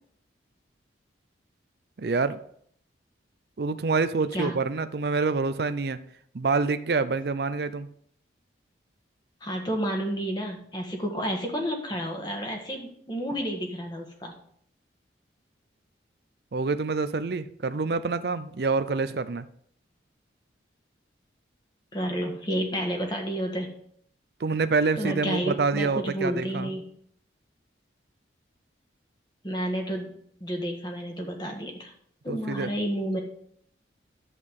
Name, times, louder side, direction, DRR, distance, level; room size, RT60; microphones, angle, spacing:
voice 1, 2.0-2.4 3.6-6.0 6.3-7.9 16.5-19.4 24.4-26.7 32.3-32.7, right 4 dB, 60° right, 11 dB, 0.5 m, -27 dB
voice 2, 9.4-14.4 21.9-23.7 25.0-26.8 29.4-30.1 30.4-31.9 32.2-33.2, equal, 25° left, 2 dB, 1.6 m, -30 dB
11.0 x 8.1 x 3.7 m, 0.65 s
head